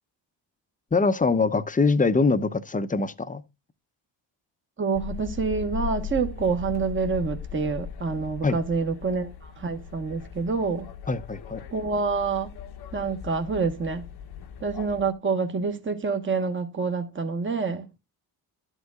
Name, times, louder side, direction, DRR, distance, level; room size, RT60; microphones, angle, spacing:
voice 1, 0.9-3.4 8.4-8.6 11.1-11.6, left 4 dB, 20° left, 0.7 m, -23 dB
voice 2, 4.8-10.9 11.7-12.5 12.9-14.0 14.6-17.9, right 4 dB, 25° right, 1.2 m, -27 dB
sound 1, 4.9-15.1, left 8 dB, 55° left, 0.9 m, -38 dB
11.5 x 8.0 x 2.3 m
cardioid pair, 85°, 45 cm